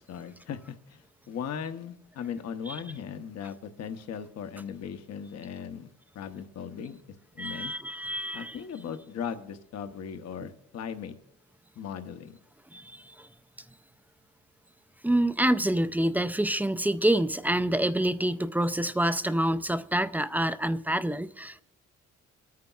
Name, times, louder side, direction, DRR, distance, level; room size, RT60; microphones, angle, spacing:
voice 1, 0.0-7.0 7.3-7.7 8.3-11.2 11.8-12.4, left 7 dB, 60° left, 0.8 m, -38 dB
voice 2, 7.4-8.6 10.4-10.5 12.7-13.3 15.0-21.6, right 1 dB, 5° right, 0.3 m, -27 dB
25.0 x 9.4 x 2.3 m
cardioid pair, 90°, 30 cm